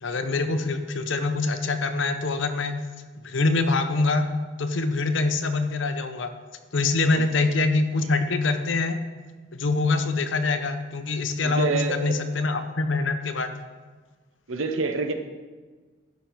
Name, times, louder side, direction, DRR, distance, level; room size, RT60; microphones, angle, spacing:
voice 1, 0.0-2.8 3.2-4.3 4.6-6.3 6.7-9.0 9.5-13.5, left 3 dB, 75° left, 8 dB, 0.8 m, -24 dB
voice 2, 11.4-12.2 14.5-15.1, right 4 dB, 90° right, 7 dB, 0.8 m, -27 dB
12.0 x 5.3 x 4.6 m, 1.4 s
head